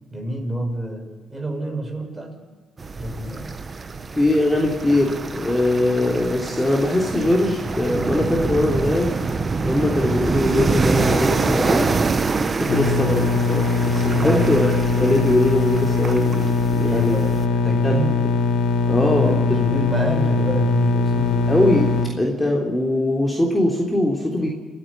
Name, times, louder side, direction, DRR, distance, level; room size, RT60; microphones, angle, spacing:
voice 1, 0.1-2.4 3.0-3.5 14.1-14.6 16.8-18.2 19.1-21.5, right 1 dB, 15° right, 2 dB, 6.6 m, -27 dB
sound 1, 2.8-17.4, right 4 dB, 35° right, 1.3 m, -25 dB
voice 2, 4.1-9.2 9.6-12.0 12.6-17.2 17.8-18.4 18.9-19.6 21.5-24.5, left 1 dB, 10° left, -1 dB, 3.5 m, -21 dB
sound 2, 12.7-22.1, left 4 dB, 90° left, 2.5 m, -21 dB
29.0 x 9.8 x 9.8 m, 1.5 s
cardioid pair, 90°, 0 cm